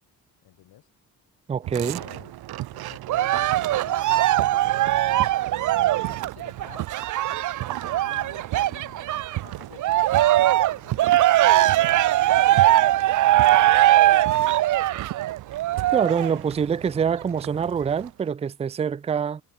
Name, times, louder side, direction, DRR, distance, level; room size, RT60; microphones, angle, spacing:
voice 1, 0.4-0.9 1.6-2.3 2.7-6.9 7.6-13.2 13.7-15.0, left 14 dB, 75° left, 6.0 m, -50 dB
voice 2, 1.5-2.0 15.9-19.4, right 7 dB, 15° right, 0.4 m, -25 dB
sound 1, 1.6-18.1, right 15 dB, 85° right, 2.4 m, -36 dB
Cheering, 3.1-9.4 9.8-16.4 17.0-17.1, right 14 dB, 55° right, 0.7 m, -20 dB
cardioid pair, 150°, 37 cm